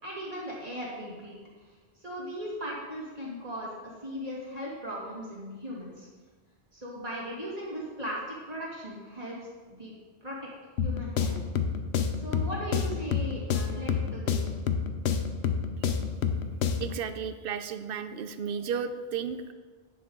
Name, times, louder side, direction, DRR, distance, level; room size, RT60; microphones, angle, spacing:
voice 1, 0.0-1.4 2.0-6.1 6.7-9.4 9.7-9.9 10.2-10.5 10.8-11.4 12.2-14.5, equal, 40° right, -5 dB, 2.6 m, -38 dB
sound 1, 10.8-17.0, left 6 dB, 85° left, 0.9 m, -29 dB
voice 2, 16.8-19.5, right 7 dB, 65° right, 11 dB, 0.7 m, -33 dB
9.9 x 6.9 x 3.9 m, 1.4 s
omnidirectional pair, 1.1 m